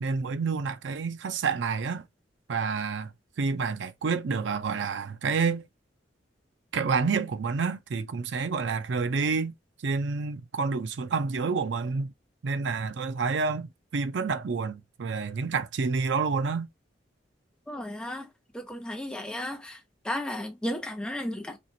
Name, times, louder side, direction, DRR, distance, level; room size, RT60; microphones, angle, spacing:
voice 1, 0.0-2.1 2.5-3.1 3.4-5.6 6.7-9.5 9.8-12.1 12.4-16.7, right 4 dB, 75° right, 0.5 m, -28 dB
voice 2, 17.7-18.3 18.5-19.8 20.0-21.6, left 1 dB, 5° left, 0.8 m, -34 dB
4.3 x 2.5 x 2.6 m
head